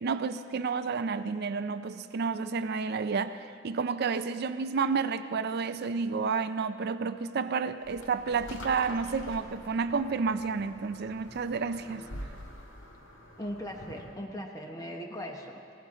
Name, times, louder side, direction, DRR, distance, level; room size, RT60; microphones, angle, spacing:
voice 1, 0.0-12.1, right 5 dB, 55° right, 11 dB, 0.4 m, -30 dB
sound 1, 7.8-14.2, equal, 90° left, 2.0 m, -46 dB
voice 2, 13.4-15.6, equal, 20° left, 2 dB, 1.0 m, -39 dB
19.5 x 17.0 x 3.8 m, 2.4 s
head